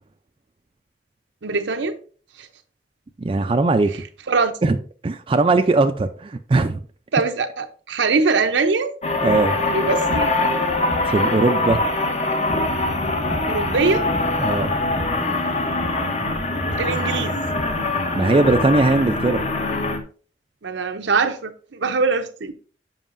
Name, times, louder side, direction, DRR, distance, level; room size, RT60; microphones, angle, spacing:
voice 1, 1.4-2.0 2.4-2.5 4.3-4.5 7.1-8.9 9.7-10.3 13.5-14.1 16.8-17.4 20.6-22.5, right 4 dB, 80° right, 0.7 m, -22 dB
voice 2, 3.2-3.9 4.6-4.8 5.0-6.8 9.2-9.6 11.1-11.8 14.4-14.7 18.2-19.4, right 3 dB, 30° right, 0.4 m, -19 dB
sound 1, 9.0-20.0, left 2 dB, 35° left, 0.8 m, -23 dB
sound 2, 12.5-20.0, equal, 70° left, 1.5 m, -31 dB
7.2 x 5.5 x 2.6 m
head